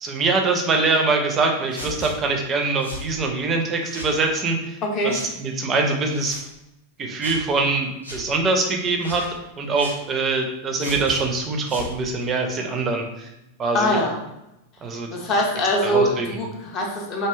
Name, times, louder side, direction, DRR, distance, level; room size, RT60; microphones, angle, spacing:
voice 1, 0.0-4.8 5.0-6.4 7.0-9.2 9.6-13.3 13.6-14.0 14.8-15.1 15.8-16.3, right 3 dB, 25° right, 4 dB, 0.4 m, -23 dB
sound 1, 1.7-2.1 2.8-3.1 3.8-4.2 5.1-5.3 6.1-6.4 7.2-7.4 8.0-8.2 9.0-9.3 9.8-10.0 10.8-11.2 11.6-11.9, equal, 85° right, 0.6 m, -35 dB
voice 2, 4.8-5.2 13.7-14.2 15.1-17.3, left 1 dB, 35° left, -1 dB, 0.4 m, -23 dB
2.6 x 2.2 x 2.2 m, 0.89 s
figure-of-eight pair, 90°, 0 cm